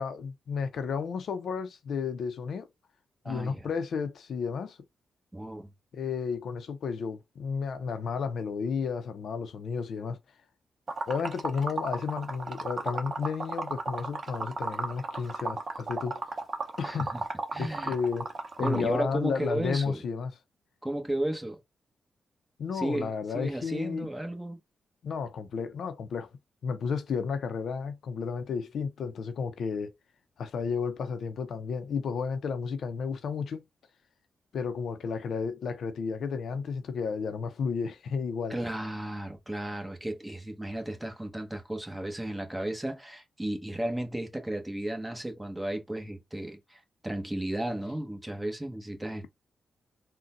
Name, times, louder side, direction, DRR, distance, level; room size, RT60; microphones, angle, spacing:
voice 1, 0.0-2.7 3.3-4.8 5.9-10.2 11.1-16.2 16.8-17.1 17.6-18.3 18.6-20.3 22.6-24.1 25.0-26.3 26.6-29.9 30.4-33.6 34.5-38.6, left 5 dB, 75° left, 0.5 m, -32 dB
voice 2, 3.2-3.7 5.3-5.7 16.8-17.2 17.5-18.0 18.6-20.0 20.8-21.6 22.7-24.6 38.5-49.3, right 1 dB, 10° right, 1.1 m, -34 dB
Liquid, 10.9-18.9, right 3 dB, 45° right, 0.7 m, -34 dB
3.8 x 2.2 x 2.5 m
cardioid pair, 70°, 0 cm